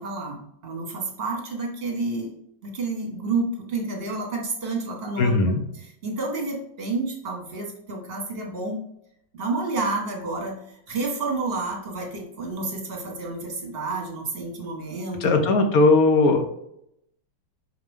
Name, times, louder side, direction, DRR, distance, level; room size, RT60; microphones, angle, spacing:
voice 1, 0.0-2.3 2.6-5.3 5.8-8.8 9.3-15.3, right 3 dB, 30° right, 0 dB, 1.7 m, -30 dB
voice 2, 5.2-5.6 15.2-16.4, left 3 dB, 55° left, 5 dB, 1.0 m, -18 dB
6.3 x 5.0 x 3.6 m, 0.76 s
omnidirectional pair, 2.3 m